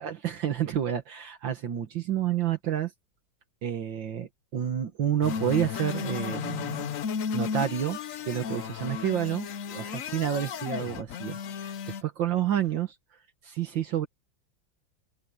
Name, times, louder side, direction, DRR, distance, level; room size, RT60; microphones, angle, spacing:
voice 1, 0.0-2.9 3.6-6.9 7.3-8.0 8.3-11.7 12.0-13.0 13.4-14.1, right 10 dB, 70° right, 2.0 m, -29 dB
sound 1, 5.2-12.0, left 7 dB, 60° left, 0.9 m, -34 dB
open air
omnidirectional pair, 2.2 m